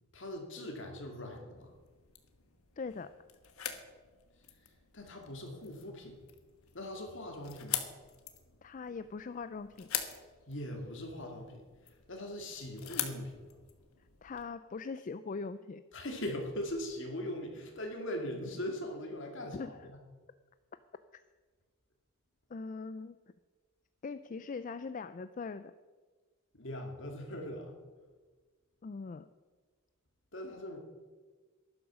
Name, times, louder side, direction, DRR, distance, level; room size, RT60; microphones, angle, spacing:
voice 1, 0.1-1.7 4.9-6.1 6.7-7.8 10.5-11.6 12.1-13.3 15.9-20.0 26.6-27.7 30.3-30.8, left 1 dB, 60° left, 2 dB, 2.4 m, -40 dB
sound 1, 1.6-14.4, left 10 dB, 90° left, 1.3 m, -44 dB
voice 2, 2.8-3.2 8.6-9.9 14.2-15.8 19.5-19.9 22.5-23.2 24.0-25.7 28.8-29.3, left 4 dB, 35° left, 12 dB, 0.3 m, -41 dB
12.0 x 11.0 x 6.2 m, 1.4 s
head